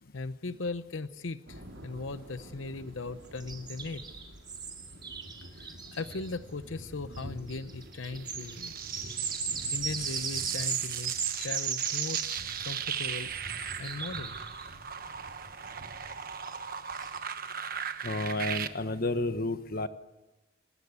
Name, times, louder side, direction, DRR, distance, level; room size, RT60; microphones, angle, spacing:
voice 1, 0.0-4.0 5.5-8.7 9.7-12.2 12.6-13.3 13.7-14.4, left 3 dB, 90° left, 12 dB, 0.8 m, -38 dB
sound 1, 1.5-17.2, equal, 85° right, 5.1 m, -49 dB
sound 2, 3.4-6.3 7.1-7.2 7.5-14.7 16.5-16.6 17.0-17.2, right 6 dB, 25° right, 3.2 m, -37 dB
sound 3, 8.1-18.7, right 8 dB, 50° right, 1.3 m, -37 dB
voice 2, 18.0-19.9, left 2 dB, 50° left, 10 dB, 1.3 m, -31 dB
29.0 x 20.0 x 8.3 m, 1.1 s
head